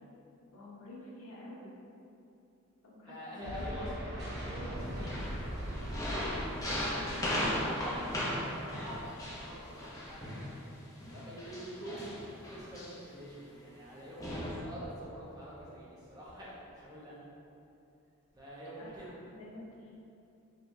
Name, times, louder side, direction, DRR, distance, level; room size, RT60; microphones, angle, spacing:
voice 1, 0.5-1.7 2.8-3.7 4.4-5.1 6.9-7.5 18.8-19.9, left 1 dB, 85° left, -6 dB, 1.1 m, -49 dB
voice 2, 3.0-4.0 4.5-5.3 6.6-17.2 18.3-19.2, equal, 20° right, -8 dB, 0.9 m, -46 dB
sound 1, 3.4-10.4, equal, 50° right, 0.8 m, -42 dB
sound 2, 4.9-10.5 11.0-13.1 13.8-13.9 14.2-14.6, left 1 dB, 15° left, 0.8 m, -37 dB
5.4 x 3.4 x 2.6 m, 2.7 s
head